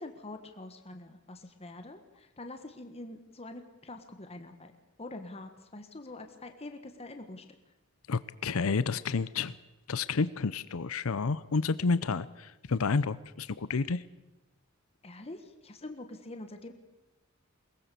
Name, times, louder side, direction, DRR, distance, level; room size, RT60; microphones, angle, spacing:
voice 1, 0.0-4.7 5.0-7.4 15.0-16.7, left 2 dB, 30° left, 6 dB, 1.4 m, -45 dB
voice 2, 8.1-9.6 9.9-14.0, left 4 dB, 85° left, 16 dB, 0.7 m, -30 dB
22.0 x 18.5 x 6.9 m, 1.0 s
head